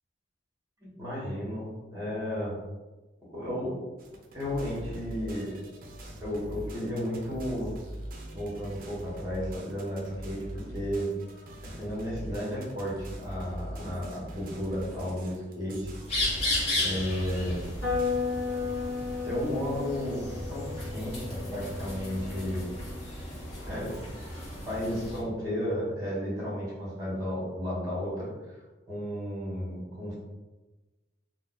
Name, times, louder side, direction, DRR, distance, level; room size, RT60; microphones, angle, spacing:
voice 1, 0.8-2.6 3.3-3.7 4.3-5.6 6.2-7.7 8.3-11.1 11.7-15.9 16.8-17.6 19.2-22.7 23.6-24.1 24.7-28.6 28.9-30.1, equal, 15° right, -6 dB, 1.3 m, -33 dB
sound 1, 4.0-18.2, right 1 dB, 45° right, 0.5 m, -42 dB
sound 2, 16.1-25.2, left 1 dB, 30° left, 1.2 m, -35 dB
sound 3, 17.8-23.6, left 5 dB, 60° left, 1.3 m, -35 dB
2.7 x 2.4 x 3.9 m, 1.2 s
head